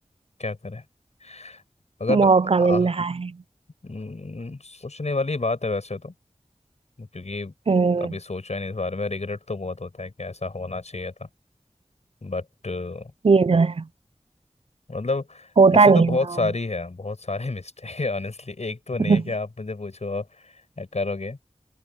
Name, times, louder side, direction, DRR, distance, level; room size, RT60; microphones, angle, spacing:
voice 1, 0.4-0.8 1.2-1.6 2.0-2.3 2.6-2.9 3.8-6.1 7.0-7.5 8.0-11.3 12.2-13.1 14.9-21.4, left 3 dB, 75° left, 6.6 m, -30 dB
voice 2, 2.1-3.3 7.7-8.1 13.2-13.8 15.6-16.2 19.0-19.2, right 4 dB, 55° right, 0.4 m, -18 dB
wide cardioid pair, 50°, 12 cm